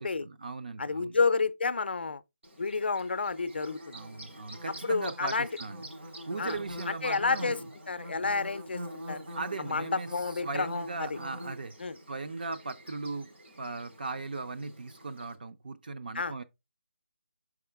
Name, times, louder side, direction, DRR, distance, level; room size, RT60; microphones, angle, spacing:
voice 1, 0.0-1.2 3.9-5.9 6.3-7.7 9.3-11.7 12.1-13.3 13.5-16.4, right 3 dB, 45° right, 0.5 m, -38 dB
voice 2, 0.8-2.2 2.6-4.0 4.8-5.5 6.4-6.6 6.9-7.6 7.9-9.3 9.7-11.2 11.8-12.0 16.1-16.3, left 4 dB, 55° left, 0.5 m, -30 dB
Bird / Buzz, 2.4-15.3, equal, 70° right, 3.1 m, -45 dB
6.2 x 4.8 x 3.4 m
figure-of-eight pair, 175°, 7 cm